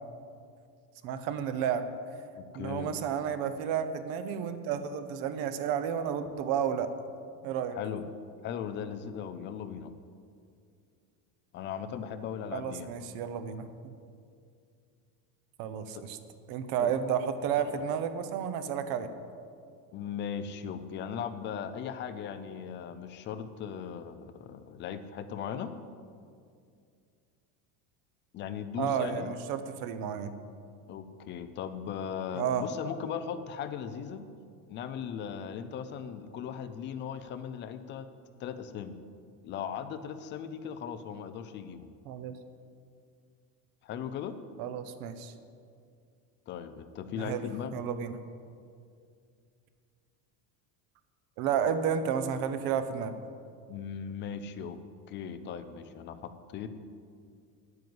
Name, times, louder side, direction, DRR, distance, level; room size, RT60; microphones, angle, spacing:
voice 1, 1.0-1.8 2.5-6.9 7.4-7.8 12.5-13.9 15.6-16.2 16.5-19.1 28.8-30.3 32.3-32.6 42.1-42.3 44.6-45.3 47.2-47.4 47.7-48.2 51.4-53.1, right 8 dB, 55° right, 10 dB, 0.9 m, -31 dB
voice 2, 2.3-2.9 7.7-8.0 8.4-9.9 11.5-12.9 15.9-16.0 16.8-16.9 19.9-25.7 28.3-29.3 30.9-34.2 34.7-38.1 38.4-38.9 39.4-41.9 43.8-44.3 46.5-47.7 53.7-54.8 55.1-56.7, left 8 dB, 25° left, 11 dB, 0.4 m, -38 dB
9.4 x 9.3 x 7.8 m, 2.3 s
cardioid pair, 170°, 43 cm